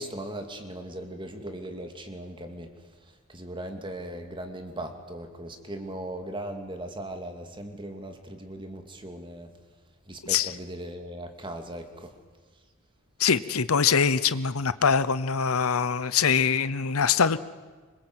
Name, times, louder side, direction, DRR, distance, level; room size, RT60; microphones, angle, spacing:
voice 1, 0.0-2.7 3.0-9.5 10.1-12.1, right 1 dB, 25° right, 6 dB, 2.4 m, -38 dB
voice 2, 13.2-17.4, left 6 dB, 85° left, 15 dB, 0.8 m, -23 dB
25.5 x 22.0 x 7.9 m, 1.4 s
head